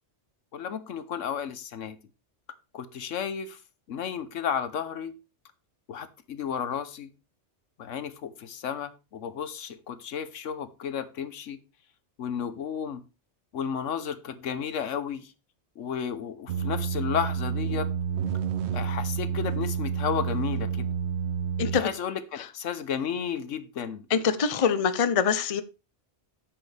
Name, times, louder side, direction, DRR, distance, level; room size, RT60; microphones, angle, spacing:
voice 1, 0.5-2.0 2.7-3.6 3.9-5.1 5.9-7.1 7.8-11.6 12.2-13.0 13.5-15.3 15.8-17.9 18.7-20.9 21.7-24.1, left 7 dB, 80° left, 1.2 m, -33 dB
sound 1, 16.5-21.9, right 7 dB, 65° right, 0.9 m, -29 dB
voice 2, 21.6-21.9 24.1-25.6, left 6 dB, 35° left, 0.6 m, -24 dB
10.5 x 7.7 x 3.3 m
omnidirectional pair, 1.3 m